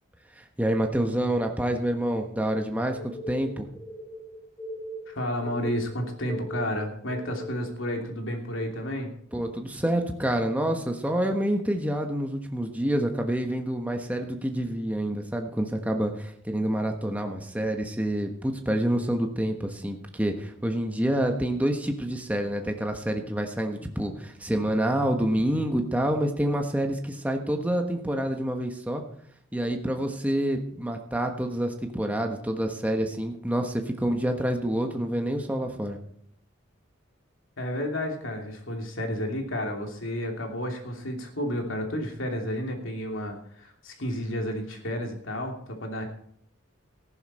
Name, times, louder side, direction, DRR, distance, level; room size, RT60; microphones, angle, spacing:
voice 1, 0.3-3.0 3.3-3.7 9.3-29.0 29.5-36.0, right 1 dB, 5° right, 3 dB, 1.3 m, -27 dB
sound 1, 2.9-7.7, right 1 dB, 15° left, 3.1 m, -39 dB
voice 2, 5.1-9.1 37.6-46.0, equal, 75° left, 2 dB, 2.9 m, -31 dB
15.0 x 11.5 x 4.4 m, 0.66 s
head